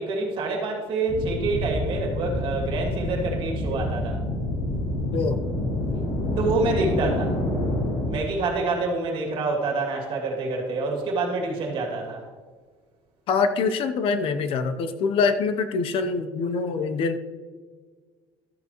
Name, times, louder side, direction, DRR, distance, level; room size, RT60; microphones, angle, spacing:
voice 1, 0.0-4.2 6.3-7.4 8.1-12.2, right 3 dB, 50° right, 0 dB, 2.4 m, -27 dB
sound 1, 1.1-8.1, left 1 dB, 75° left, 2.7 m, -27 dB
voice 2, 13.3-17.2, left 4 dB, 55° left, 10 dB, 0.7 m, -24 dB
12.5 x 8.0 x 3.0 m, 1.5 s
cardioid pair, 140°, 11 cm